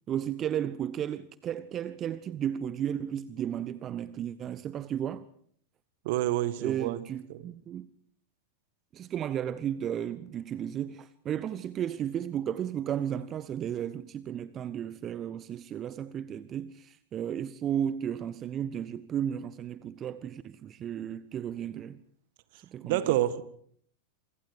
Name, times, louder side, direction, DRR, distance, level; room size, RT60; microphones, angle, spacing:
voice 1, 0.1-5.2 6.6-7.9 8.9-22.0 22.7-23.1, right 9 dB, 30° right, 0.9 m, -34 dB
voice 2, 6.0-7.0 7.3-7.4 22.8-23.4, right 14 dB, 50° right, 1.7 m, -28 dB
27.5 x 25.5 x 5.0 m
figure-of-eight pair, 90°, 0 cm